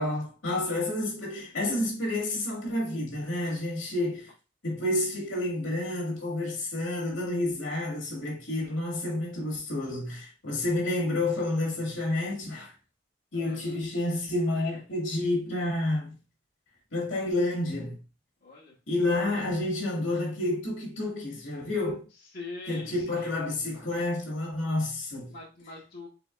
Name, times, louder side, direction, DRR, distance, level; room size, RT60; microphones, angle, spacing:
voice 1, 0.0-4.3 4.6-12.7 13.3-16.2 16.9-18.0 18.9-22.1 22.7-25.3, left 1 dB, 85° left, 2.1 m, -29 dB
voice 2, 0.5-0.9 13.3-13.8 18.4-18.7 22.3-23.3 25.3-26.1, left 3 dB, 50° left, 1.4 m, -44 dB
5.0 x 3.8 x 2.4 m
head